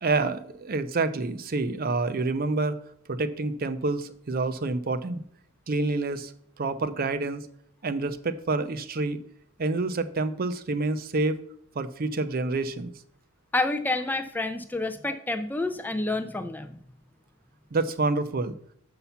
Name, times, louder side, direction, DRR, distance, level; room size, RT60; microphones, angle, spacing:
voice 1, 0.0-2.8 3.1-5.2 5.7-6.3 6.6-7.4 7.8-9.2 9.6-11.4 11.8-12.9 17.7-18.6, right 3 dB, 45° right, 12 dB, 0.5 m, -28 dB
voice 2, 13.5-16.8, left 2 dB, 10° left, 8 dB, 0.3 m, -29 dB
6.9 x 5.7 x 5.6 m, 0.65 s
head